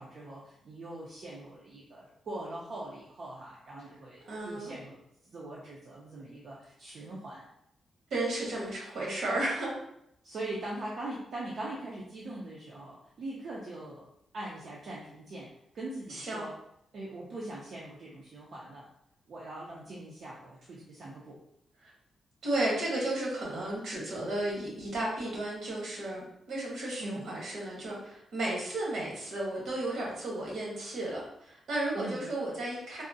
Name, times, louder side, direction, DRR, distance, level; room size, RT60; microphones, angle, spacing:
voice 1, 0.0-7.5 10.2-14.0 14.3-15.5 15.7-16.5 16.9-18.9 19.3-21.4 27.0-27.2 32.0-32.3, right 2 dB, 55° right, -5 dB, 0.5 m, -42 dB
voice 2, 4.3-4.8 8.1-9.7 16.1-16.5 21.8-21.9 22.4-33.0, right 1 dB, 70° right, -3 dB, 1.0 m, -33 dB
3.5 x 2.0 x 2.5 m, 0.76 s
wide cardioid pair, 170°, 0 cm